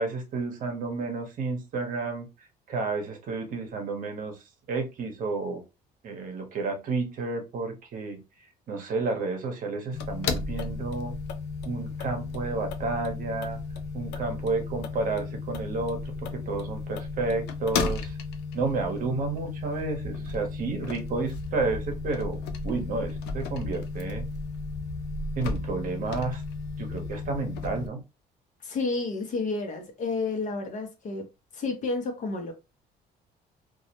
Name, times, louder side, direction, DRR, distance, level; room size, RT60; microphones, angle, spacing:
voice 1, 0.0-5.6 6.0-8.2 8.7-11.1 11.6-13.6 13.9-18.2 18.5-22.4 22.6-24.3 25.4-26.4 26.8-28.0, right 3 dB, 55° right, 0.8 m, -31 dB
sound 1, 9.9-27.9, left 4 dB, 80° left, 0.5 m, -34 dB
voice 2, 28.6-31.2 31.5-32.5, left 3 dB, 50° left, 0.8 m, -30 dB
2.3 x 2.0 x 2.8 m
cardioid pair, 110°, 17 cm